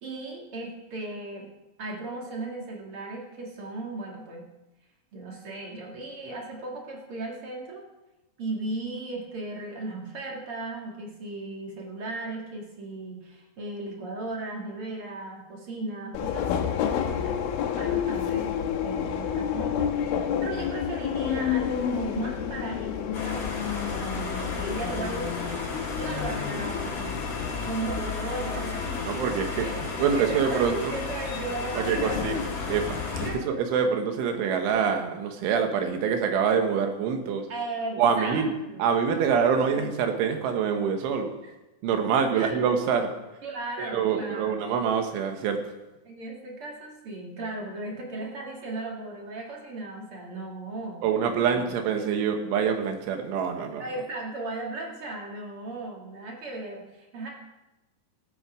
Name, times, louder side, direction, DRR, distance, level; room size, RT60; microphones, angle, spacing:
voice 1, 0.0-1.5 1.8-4.5 5.1-7.8 8.4-17.4 17.8-25.6 26.0-27.2 27.6-29.2 29.6-29.8 30.2-32.4 33.2-33.5 37.5-38.8 39.4-39.9 42.3-42.5 43.4-44.6 46.0-51.0 51.5-51.6 53.8-57.3, right 2 dB, 45° right, -1 dB, 1.9 m, -36 dB
Subway metro underground, 16.1-33.4, left 8 dB, 85° left, 3.6 m, -31 dB
sound 1, 23.1-33.3, left 4 dB, 40° left, 3.4 m, -34 dB
voice 2, 29.0-29.7 30.0-30.9 31.8-37.5 38.0-38.5 38.8-41.3 41.8-43.2 43.8-45.7 51.0-53.8, right 6 dB, 90° right, 5 dB, 3.8 m, -25 dB
16.5 x 8.4 x 5.0 m, 1.0 s
omnidirectional pair, 5.3 m